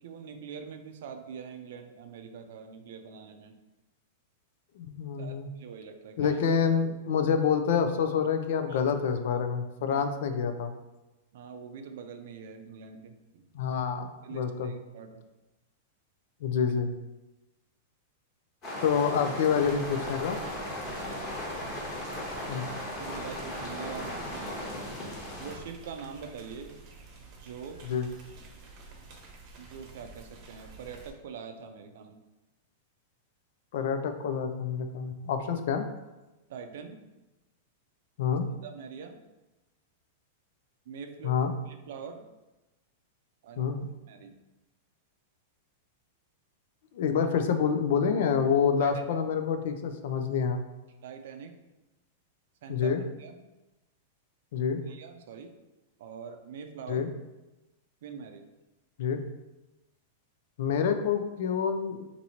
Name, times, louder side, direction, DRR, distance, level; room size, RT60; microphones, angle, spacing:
voice 1, 0.0-3.6 5.2-6.4 8.7-8.8 9.9-10.0 11.3-13.5 14.2-15.2 20.9-21.2 22.6-22.7 23.0-24.6 25.4-26.8 27.4-27.8 29.6-32.2 36.5-37.0 38.6-39.2 40.9-42.3 43.4-43.7 44.1-44.4 48.8-48.9 51.0-51.6 52.6-52.9 53.2-53.4 54.9-55.5 56.0-57.1 58.0-58.5, right 6 dB, 70° right, 6 dB, 0.4 m, -44 dB
voice 2, 4.8-5.5 6.2-10.7 13.5-14.7 16.4-16.9 18.8-20.4 22.5-22.6 27.9-28.1 33.7-35.8 38.2-38.5 41.2-41.5 43.6-43.9 46.9-50.6 52.7-53.0 54.5-54.8 56.9-57.1 59.0-59.2 60.6-62.0, left 6 dB, 70° left, 8 dB, 0.4 m, -27 dB
sound 1, 18.6-25.6, left 1 dB, 30° left, 1.1 m, -37 dB
sound 2, 19.6-31.1, right 3 dB, 45° right, 0.8 m, -50 dB
2.8 x 2.6 x 4.2 m, 1.1 s
hypercardioid pair, 135°, 0 cm